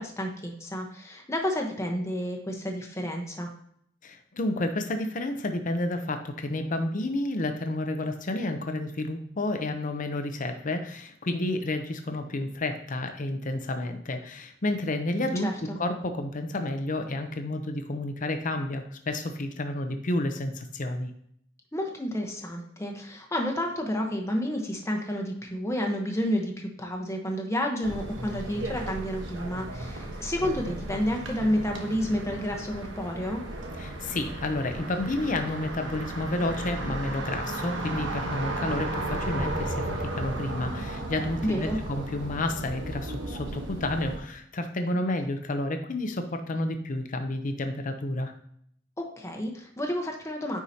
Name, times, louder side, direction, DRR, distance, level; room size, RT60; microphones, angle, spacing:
voice 1, 0.0-3.5 15.4-15.8 21.7-33.4 41.4-41.8 49.0-50.6, equal, 15° left, 2 dB, 1.0 m, -30 dB
voice 2, 4.0-21.1 33.8-39.9 40.1-48.3, left 1 dB, 45° left, 6 dB, 0.7 m, -30 dB
sound 1, 27.8-44.2, right 1 dB, 70° right, 1.1 m, -35 dB
9.4 x 4.8 x 2.8 m, 0.67 s
head